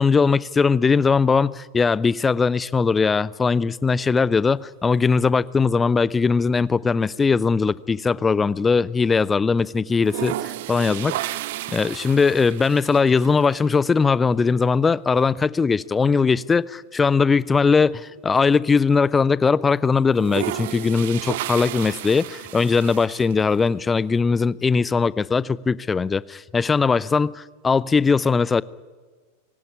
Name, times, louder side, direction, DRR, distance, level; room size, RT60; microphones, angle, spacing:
voice 1, 0.0-11.4 11.7-28.6, left 5 dB, 15° left, 0.6 m, -20 dB
sound 1, 5.9-6.7 7.0-9.0 9.3-9.4 9.9-13.6 15.1-15.2 15.6-15.7 16.0-18.4 18.9-19.0 20.0-23.7, right 14 dB, 50° right, 0.8 m, -33 dB
21.5 x 17.5 x 10.0 m
figure-of-eight pair, 90°, 0 cm